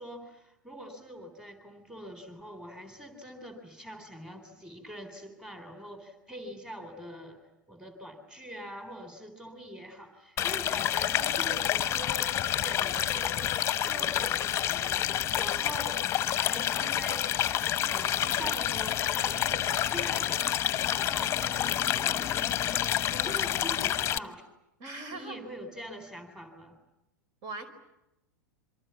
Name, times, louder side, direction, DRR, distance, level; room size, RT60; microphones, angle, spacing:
voice 1, 0.0-7.4 7.7-16.1 16.3-17.3 17.6-24.4 25.1-26.8, equal, 5° right, 7 dB, 4.0 m, -44 dB
sound 1, 10.4-24.2, left 11 dB, 25° left, 1.1 m, -28 dB
voice 2, 24.8-25.4 27.4-27.7, right 2 dB, 40° right, 11 dB, 4.9 m, -39 dB
27.5 x 24.5 x 8.4 m, 0.90 s
figure-of-eight pair, 90°, 10 cm